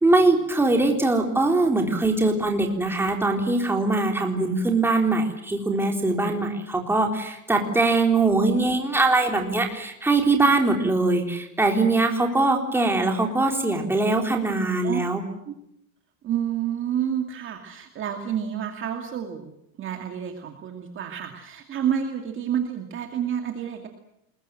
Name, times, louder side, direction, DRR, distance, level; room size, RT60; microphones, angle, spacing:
voice 1, 0.0-15.2, right 2 dB, 5° right, 2 dB, 3.9 m, -22 dB
voice 2, 16.2-19.5 19.8-23.9, right 9 dB, 30° right, 4 dB, 2.4 m, -29 dB
27.5 x 21.5 x 7.8 m, 0.78 s
supercardioid pair, 150°, 42 cm